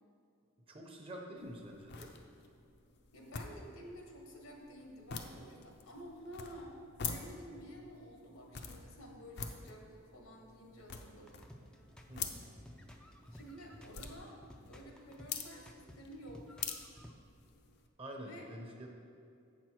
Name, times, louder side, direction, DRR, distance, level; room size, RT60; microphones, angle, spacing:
voice 1, 0.7-2.1 12.1-12.4 18.0-18.9, right 1 dB, 25° right, 1 dB, 0.9 m, -47 dB
sound 1, 1.4-17.9, left 6 dB, 55° left, 0.6 m, -47 dB
voice 2, 3.1-6.8 7.0-11.4 13.3-16.5 18.2-18.5, equal, 85° left, 1 dB, 1.4 m, -51 dB
sound 2, 11.3-17.1, equal, 5° left, 0.4 m, -55 dB
7.9 x 6.1 x 4.6 m, 2.5 s
head